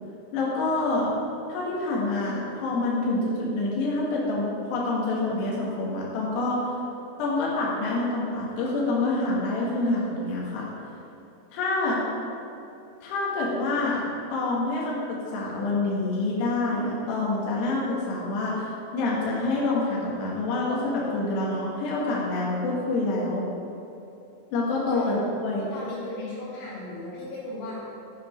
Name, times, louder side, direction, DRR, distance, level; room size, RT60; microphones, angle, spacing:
voice 1, 0.3-1.2 1.5-6.8 7.2-10.7 11.5-12.0 13.0-23.5 24.5-25.7, left 2 dB, 65° left, -5 dB, 3.7 m, -27 dB
voice 2, 25.6-27.9, left 2 dB, 85° left, -7 dB, 5.2 m, -36 dB
12.5 x 7.4 x 5.3 m, 2.8 s
omnidirectional pair, 5.6 m